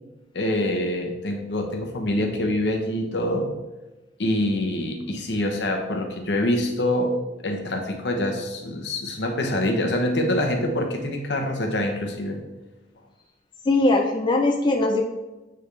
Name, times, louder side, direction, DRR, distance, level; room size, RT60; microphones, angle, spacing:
voice 1, 0.3-3.5 4.2-7.2 7.4-12.4, left 1 dB, 70° left, 3 dB, 0.9 m, -25 dB
voice 2, 13.6-15.0, left 2 dB, 25° left, 1 dB, 0.5 m, -20 dB
8.9 x 3.4 x 3.2 m, 1.1 s
head